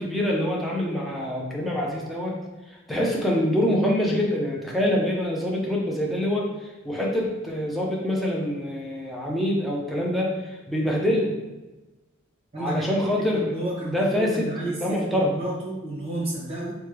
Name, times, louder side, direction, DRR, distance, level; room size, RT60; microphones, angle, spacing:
voice 1, 0.0-2.4 2.9-6.5 6.8-11.3 12.6-13.5 13.9-14.5 14.8-15.3, left 1 dB, ahead, -3 dB, 0.4 m, -25 dB
voice 2, 12.5-12.8 13.2-16.8, right 1 dB, 30° right, -6 dB, 1.0 m, -31 dB
3.1 x 2.2 x 3.2 m, 1.1 s
head